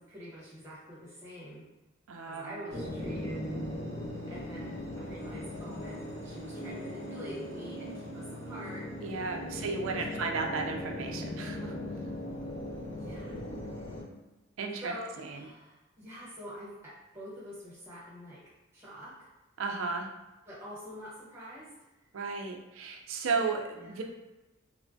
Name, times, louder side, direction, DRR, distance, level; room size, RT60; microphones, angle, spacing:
voice 1, 0.0-1.7 2.3-3.5 4.3-8.9 9.5-10.1 13.0-13.4 14.8-18.4 18.7-19.3 20.5-21.7 23.3-23.5 23.7-24.0, equal, 15° right, -8 dB, 0.9 m, -46 dB
voice 2, 2.1-2.7 9.0-11.8 14.6-14.9 15.2-15.4 19.6-20.1 22.1-24.0, right 4 dB, 85° right, 3 dB, 0.4 m, -34 dB
sound 1, 2.7-14.0, left 1 dB, 30° left, 0.7 m, -39 dB
3.0 x 2.1 x 2.6 m, 1.1 s
head